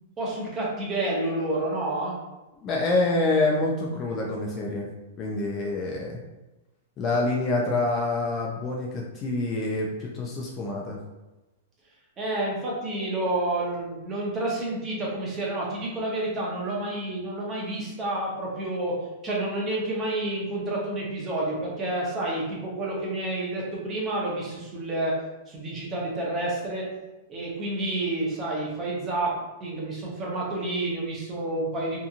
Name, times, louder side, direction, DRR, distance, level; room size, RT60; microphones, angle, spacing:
voice 1, 0.2-2.2 12.2-19.0 19.2-25.2 25.5-26.9 27.3-29.3 29.6-32.1, right 2 dB, 20° right, -4 dB, 0.7 m, -29 dB
voice 2, 2.6-4.9 5.2-6.2 7.0-11.0, left 2 dB, 25° left, -2 dB, 0.3 m, -26 dB
2.8 x 2.5 x 2.4 m, 1.0 s
supercardioid pair, 160°, 0 cm